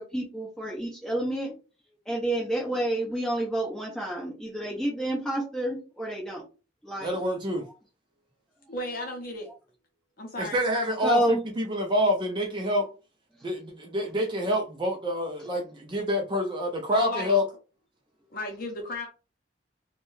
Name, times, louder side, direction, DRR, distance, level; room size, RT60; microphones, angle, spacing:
voice 1, 0.0-1.5 2.1-6.4 6.8-7.2 11.0-11.4, right 1 dB, 5° left, 1.0 m, -29 dB
voice 2, 7.0-7.6 10.4-12.9 13.4-17.4, left 1 dB, 25° right, 0.4 m, -27 dB
voice 3, 8.7-9.5 10.2-10.6 16.9-17.3 18.3-19.1, left 1 dB, 50° left, 0.6 m, -34 dB
2.6 x 2.2 x 3.1 m
head